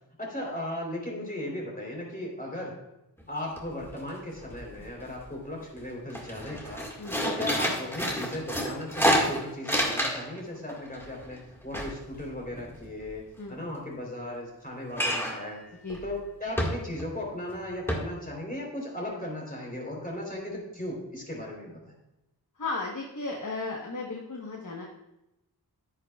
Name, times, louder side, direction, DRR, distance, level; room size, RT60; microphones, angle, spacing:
voice 1, 0.2-2.8 3.3-6.9 7.2-15.7 16.0-21.9, left 1 dB, 20° left, -2 dB, 3.5 m, -37 dB
sound 1, 3.2-3.3 3.6-4.1 4.4-5.2 5.6-5.8 6.1-10.4 10.7-13.1 14.9-15.5 15.9-16.1 16.6-17.1 17.5-17.6 17.9-18.0, equal, 5° left, 1.8 m, -29 dB
voice 2, 22.6-24.9, left 3 dB, 45° left, -1 dB, 1.2 m, -35 dB
10.5 x 9.6 x 2.4 m, 0.91 s
wide cardioid pair, 65°, 41 cm